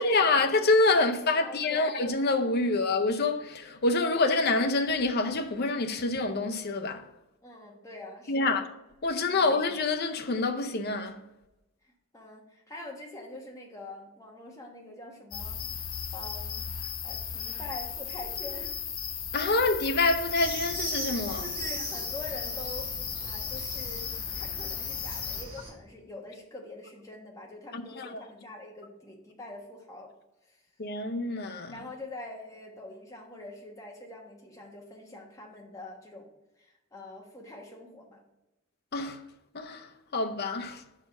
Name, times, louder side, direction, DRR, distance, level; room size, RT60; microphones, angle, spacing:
voice 1, 0.0-7.1 8.3-8.6 9.0-11.2 19.3-21.4 27.7-28.1 30.8-31.7 38.9-39.2 39.5-40.8, left 3 dB, 45° left, 0.6 m, -26 dB
voice 2, 1.4-1.9 7.4-8.7 9.3-9.6 11.8-15.6 16.1-16.7 17.0-18.8 21.4-22.9 23.2-24.1 24.3-30.1 30.5-30.6 31.7-36.3 36.6-38.2, left 2 dB, 15° left, 1.1 m, -44 dB
sound 1, 15.3-25.4, left 7 dB, 85° left, 0.9 m, -36 dB
sound 2, 20.3-25.7, right 2 dB, 25° right, 1.6 m, -40 dB
5.5 x 4.9 x 5.7 m
head